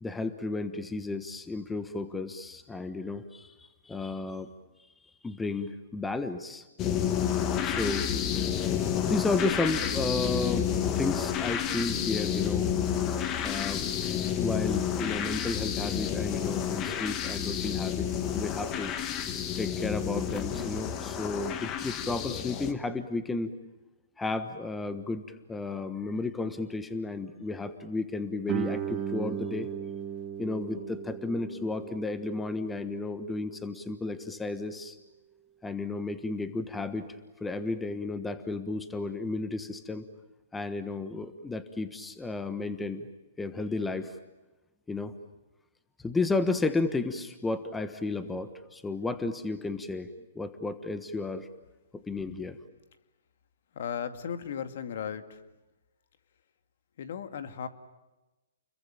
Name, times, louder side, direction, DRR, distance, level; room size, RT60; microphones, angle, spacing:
voice 1, 0.0-4.5 5.2-6.6 7.6-8.1 9.1-10.7 11.0-12.7 13.4-18.1 18.3-19.0 19.6-23.5 24.2-29.7 30.4-34.9 35.6-37.1 37.4-40.0 40.5-43.1 43.4-44.1 44.9-45.1 46.0-50.1 50.3-51.5 51.9-52.6, left 3 dB, 10° left, 11 dB, 1.3 m, -33 dB
sound 1, 6.8-22.7, left 9 dB, 25° left, 1.8 m, -30 dB
Guitar, 28.5-33.8, right 9 dB, 25° right, 2.4 m, -37 dB
voice 2, 53.7-55.4 57.0-57.7, left 8 dB, 60° left, 10 dB, 2.2 m, -36 dB
29.5 x 22.5 x 9.0 m, 1.1 s
hypercardioid pair, 145°, 0 cm